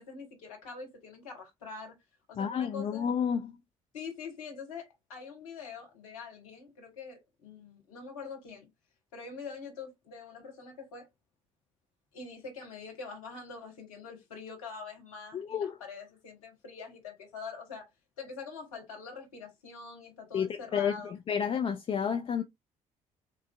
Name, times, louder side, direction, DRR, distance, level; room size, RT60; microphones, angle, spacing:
voice 1, 0.0-2.0 2.3-3.1 3.9-8.7 9.1-11.1 12.1-17.9 18.2-21.1, left 5 dB, 75° left, 1.0 m, -44 dB
voice 2, 2.4-3.5 15.3-15.7 20.3-22.4, left 7 dB, 30° left, 0.4 m, -30 dB
3.8 x 2.5 x 2.2 m
figure-of-eight pair, 50°, 18 cm